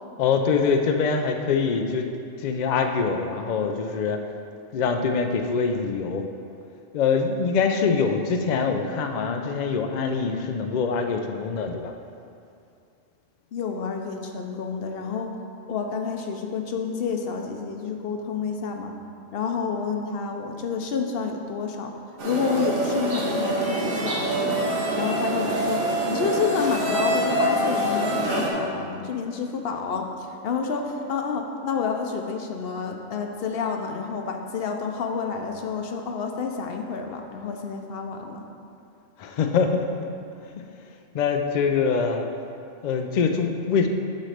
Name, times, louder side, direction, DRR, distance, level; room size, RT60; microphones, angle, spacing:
voice 1, 0.2-2.0 2.4-4.2 4.7-6.3 6.9-11.9 39.2-40.1 40.5-40.6 41.1-42.2 42.8-43.9, left 5 dB, 75° left, 5 dB, 0.4 m, -24 dB
voice 2, 13.5-15.4 15.7-18.9 19.3-21.9 22.2-24.7 25.0-25.8 26.1-38.5, left 5 dB, 60° left, 3 dB, 0.7 m, -29 dB
sound 1, 22.2-28.5, right 1 dB, 50° right, 1.2 m, -25 dB
8.2 x 3.2 x 6.4 m, 2.5 s
omnidirectional pair, 1.3 m